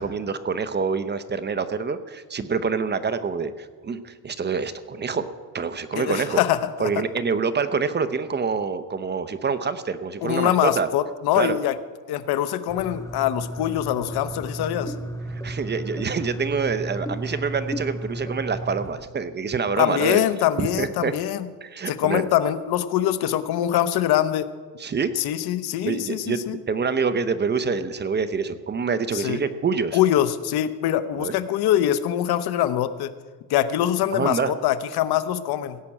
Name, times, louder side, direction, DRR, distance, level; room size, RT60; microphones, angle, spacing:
voice 1, 0.0-5.3 5.5-6.4 6.8-10.9 11.3-11.6 15.3-20.2 20.6-21.1 21.6-22.2 24.8-25.1 25.8-26.4 26.7-30.0 31.2-31.3 34.1-34.5, right 5 dB, 30° right, 11 dB, 0.7 m, -26 dB
voice 2, 5.9-6.9 10.2-11.8 12.1-14.9 19.8-21.5 21.9-24.5 25.2-26.6 29.1-29.4 29.9-33.1 33.5-35.8, left 12 dB, 80° left, 12 dB, 0.9 m, -23 dB
sound 1, 12.7-19.1, right 1 dB, 10° left, 1.0 m, -33 dB
17.0 x 6.0 x 8.6 m, 1.4 s
cardioid pair, 120°, 37 cm